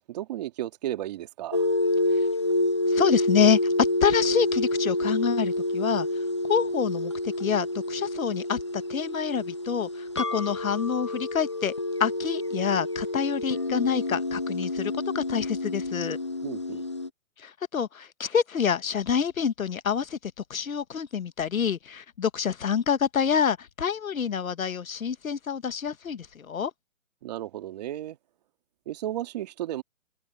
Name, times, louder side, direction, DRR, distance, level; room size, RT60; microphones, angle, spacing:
voice 1, 0.0-1.6 16.4-16.8 27.2-28.2 28.9-29.8, right 13 dB, 30° right, 2.8 m, -34 dB
sound 1, 1.5-17.1, left 1 dB, 20° left, 0.5 m, -28 dB
voice 2, 2.9-3.6 4.0-6.1 6.5-7.1 7.4-11.7 12.0-16.2 17.4-20.2 20.5-26.7, left 7 dB, 80° left, 1.4 m, -27 dB
hypercardioid pair, 160°, 41 cm